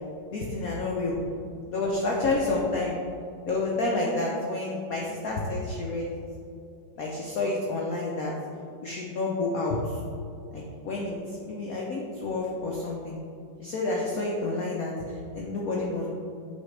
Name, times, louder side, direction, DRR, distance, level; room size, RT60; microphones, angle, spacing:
voice 1, 0.3-1.2 1.7-3.0 3.5-6.1 7.0-8.3 8.8-10.0 10.5-11.2 11.4-13.2 13.6-14.9 15.3-16.1, left 2 dB, 65° left, -2 dB, 0.8 m, -29 dB
9.2 x 3.7 x 3.2 m, 2.5 s
omnidirectional pair, 2.3 m